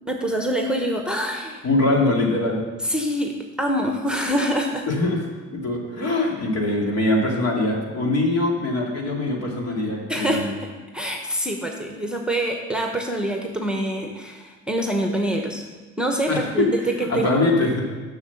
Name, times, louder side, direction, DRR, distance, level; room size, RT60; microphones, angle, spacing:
voice 1, 0.1-1.6 2.8-4.8 10.1-10.7 10.9-15.6 16.0-16.7 17.0-17.4, equal, 5° right, 2 dB, 1.1 m, -25 dB
voice 2, 1.6-2.6 4.9-5.2 5.5-10.5 16.3-17.8, left 2 dB, 55° left, -1 dB, 2.3 m, -22 dB
7.1 x 6.5 x 7.1 m, 1.3 s
cardioid pair, 90°, 30 cm